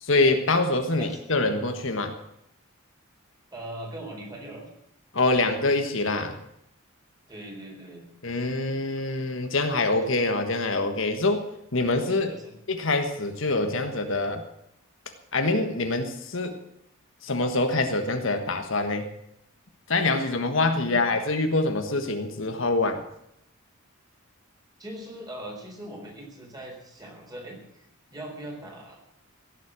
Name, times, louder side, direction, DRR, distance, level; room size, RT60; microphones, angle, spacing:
voice 1, 0.0-2.1 5.1-6.4 8.2-11.4 11.7-12.3 12.7-14.4 15.3-16.6 17.2-19.1 19.9-23.0, left 2 dB, 60° left, 6 dB, 1.5 m, -25 dB
voice 2, 3.5-4.7 7.3-8.1 12.3-12.5 20.8-21.1 24.8-27.8 28.1-29.0, right 1 dB, 20° right, 0 dB, 4.0 m, -40 dB
16.5 x 7.6 x 8.9 m, 0.78 s
head